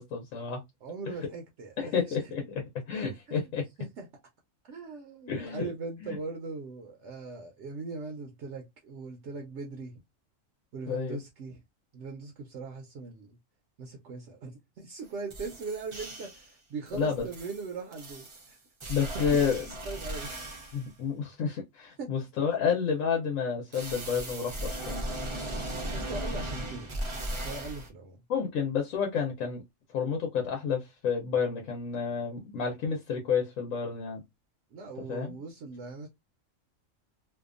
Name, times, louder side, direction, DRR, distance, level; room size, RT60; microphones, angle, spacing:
voice 1, 0.0-0.6 1.8-3.7 5.3-5.7 6.0-6.1 10.9-11.2 16.9-17.2 18.9-19.6 20.7-25.0 28.3-29.6 29.9-34.2 35.1-35.3, left 6 dB, 85° left, 1.1 m, -30 dB
voice 2, 0.8-2.5 3.3-3.5 3.8-4.1 4.7-10.0 10.7-11.6 11.9-13.4 13.8-20.6 22.0-22.1 25.9-28.2 34.7-36.1, right 4 dB, 70° right, 0.8 m, -40 dB
sound 1, 15.0-15.1 15.3-16.5 16.9-20.9 23.7-27.9, right 1 dB, 40° right, 0.4 m, -37 dB
2.7 x 2.2 x 2.4 m
omnidirectional pair, 1.4 m